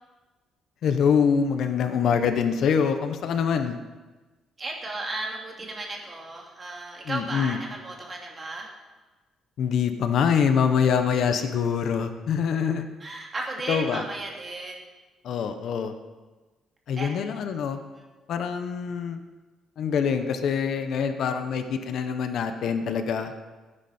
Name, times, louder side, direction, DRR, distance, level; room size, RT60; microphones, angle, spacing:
voice 1, 0.8-3.8 7.1-7.6 9.6-12.9 13.7-14.0 15.2-15.9 16.9-17.8 18.3-19.2 19.8-23.3, left 7 dB, 60° left, 8 dB, 0.9 m, -24 dB
voice 2, 4.6-8.7 13.0-14.8 17.0-17.1, right 2 dB, 25° right, -1 dB, 2.7 m, -34 dB
17.0 x 10.0 x 4.4 m, 1.2 s
cardioid pair, 145°, 0 cm